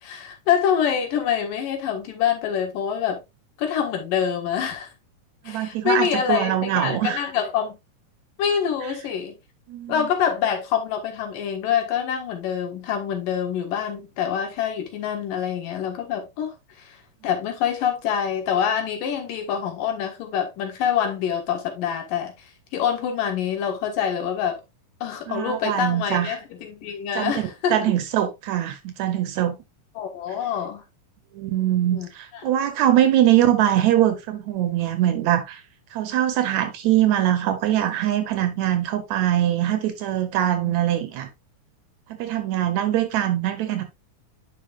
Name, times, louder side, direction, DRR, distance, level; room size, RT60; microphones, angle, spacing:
voice 1, 0.0-3.2 3.6-4.9 5.5-7.8 8.4-9.3 9.9-17.0 17.2-22.3 22.7-24.6 25.0-27.8 30.0-30.8 31.9-32.1 32.3-32.4 40.6-40.7, left 8 dB, 85° left, 3.2 m, -25 dB
voice 2, 5.5-7.3 9.7-10.1 25.3-26.4 27.2-29.6 31.3-35.6 35.9-41.3 42.1-43.8, right 12 dB, 75° right, 1.9 m, -22 dB
10.0 x 5.4 x 2.4 m
omnidirectional pair, 3.7 m